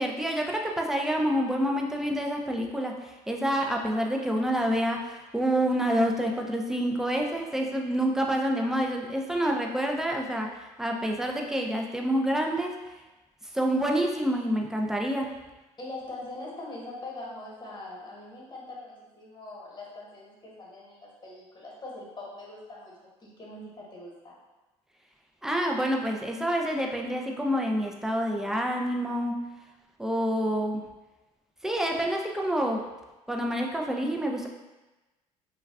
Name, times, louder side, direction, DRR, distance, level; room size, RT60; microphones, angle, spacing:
voice 1, 0.0-12.7 13.5-15.4 25.4-29.4 30.0-30.8 31.6-32.9 33.3-34.5, equal, 5° right, 1 dB, 0.4 m, -27 dB
voice 2, 15.8-24.4, left 2 dB, 30° left, -4 dB, 1.2 m, -42 dB
2.3 x 2.2 x 3.4 m, 1.1 s
hypercardioid pair, 65°, 15 cm